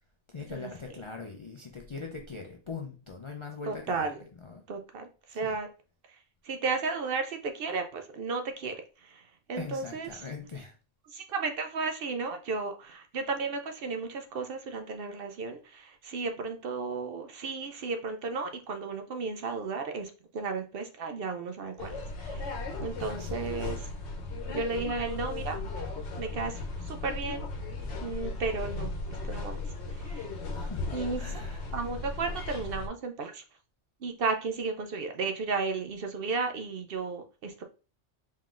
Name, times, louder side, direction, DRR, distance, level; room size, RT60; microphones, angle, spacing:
voice 1, 0.3-4.1 4.4-4.6 5.3-5.6 9.5-10.7 23.0-23.7 30.5-30.8 31.2-31.6, left 4 dB, 50° left, 0.3 m, -41 dB
voice 2, 3.6-4.2 4.7-5.7 6.1-10.3 11.1-22.5 22.8-23.9 24.5-25.6 26.2-27.4 28.0-28.9 29.3-29.6 29.9-30.2 30.9-33.4 34.0-37.6, right 4 dB, 60° right, 0.7 m, -34 dB
sound 1, 21.8-32.9, left 3 dB, 70° left, 1.1 m, -36 dB
4.2 x 3.8 x 2.4 m
omnidirectional pair, 1.2 m